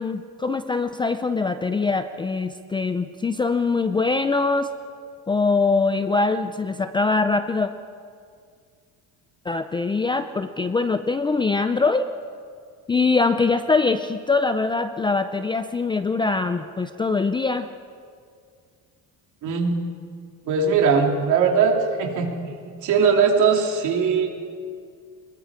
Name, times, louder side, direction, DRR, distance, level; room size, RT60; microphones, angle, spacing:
voice 1, 0.0-4.7 5.3-7.7 9.5-12.1 12.9-17.7, left 4 dB, 15° left, 9 dB, 0.4 m, -23 dB
voice 2, 19.4-19.8 20.5-24.3, right 5 dB, 55° right, 2 dB, 3.1 m, -20 dB
25.0 x 22.0 x 5.0 m, 2.2 s
cardioid pair, 155°, 36 cm